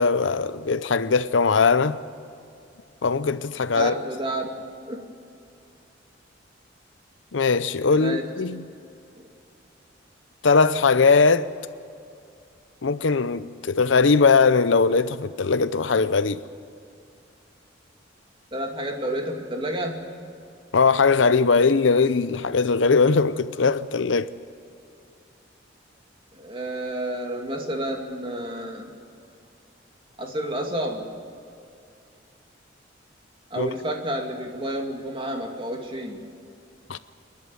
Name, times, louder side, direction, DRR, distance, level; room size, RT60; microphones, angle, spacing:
voice 1, 0.0-2.0 3.0-4.0 7.3-8.6 10.4-11.5 12.8-16.4 20.7-24.3 33.6-33.7 36.9-37.0, left 4 dB, 80° left, 0.7 m, -20 dB
voice 2, 3.7-4.6 4.9-5.0 8.0-8.2 9.2-9.3 18.5-20.0 26.3-28.9 30.2-31.1 33.5-36.3, right 1 dB, 30° right, 2.3 m, -30 dB
28.0 x 11.5 x 9.3 m
head